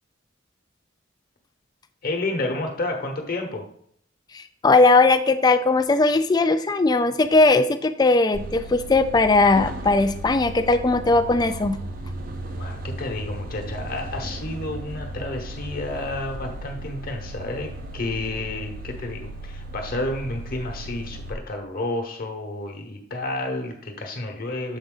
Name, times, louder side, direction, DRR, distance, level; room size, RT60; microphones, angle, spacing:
voice 1, 2.0-3.6 12.5-24.8, left 2 dB, 45° left, 3 dB, 1.0 m, -30 dB
voice 2, 4.3-11.8, left 3 dB, 20° left, 10 dB, 0.3 m, -19 dB
sound 1, 8.3-21.3, right 1 dB, 45° right, 0.6 m, -36 dB
7.2 x 3.9 x 3.8 m, 0.67 s
head